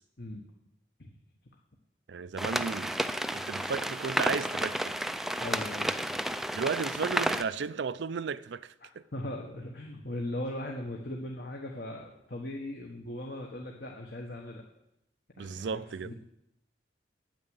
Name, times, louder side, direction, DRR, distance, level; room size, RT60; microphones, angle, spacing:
voice 1, 2.1-2.9 3.3-5.0 6.5-9.0 15.4-16.1, right 5 dB, 70° right, 0.4 m, -34 dB
sound 1, 2.4-7.4, right 1 dB, ahead, 0.3 m, -31 dB
voice 2, 5.4-5.9 9.1-14.6 15.4-16.1, left 1 dB, 55° left, 1.3 m, -38 dB
9.1 x 8.7 x 8.0 m
head